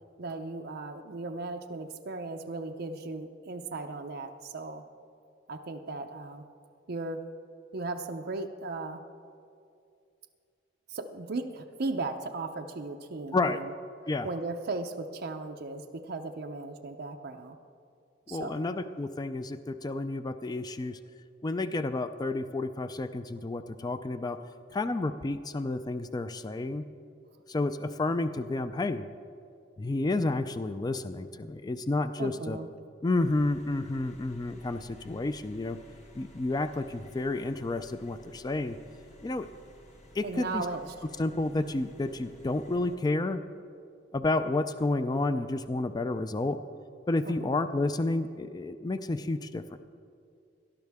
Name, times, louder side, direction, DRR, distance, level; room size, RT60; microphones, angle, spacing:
voice 1, 0.2-4.8 5.5-6.4 6.9-7.3 7.7-9.0 10.9-13.7 14.2-17.6 18.3-18.7 32.2-32.7 40.2-40.9 41.5-41.6 47.2-47.6, right 3 dB, 60° right, 4 dB, 0.6 m, -36 dB
voice 2, 18.3-21.0 21.4-24.4 24.7-26.8 27.5-29.1 29.8-32.6 33.0-35.8 36.1-38.8 39.2-39.5 40.1-40.6 41.2-43.4 44.1-46.6 47.1-49.8, left 2 dB, 20° left, 10 dB, 0.4 m, -30 dB
sound 1, 33.2-43.0, equal, 40° left, 1.4 m, -54 dB
18.5 x 11.5 x 3.5 m, 2.4 s
head